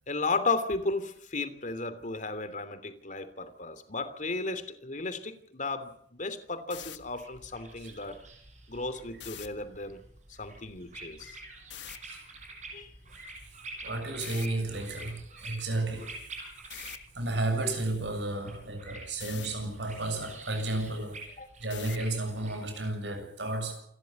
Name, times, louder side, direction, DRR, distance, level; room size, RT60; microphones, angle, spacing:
voice 1, 0.1-8.2 8.7-10.0 10.4-11.4 12.7-12.9 21.4-21.5, left 3 dB, 45° left, 3.0 m, -34 dB
sound 1, 6.6-7.0 9.1-9.5 11.7-12.0 14.2-14.5 16.7-17.0 19.2-19.5 21.7-22.1, left 12 dB, 90° left, 1.4 m, -43 dB
sound 2, 6.7-22.7, right 2 dB, 45° right, 5.9 m, -48 dB
voice 2, 13.8-16.1 17.1-21.2 21.6-23.8, right 2 dB, 85° right, 7.3 m, -32 dB
28.5 x 13.5 x 9.6 m
head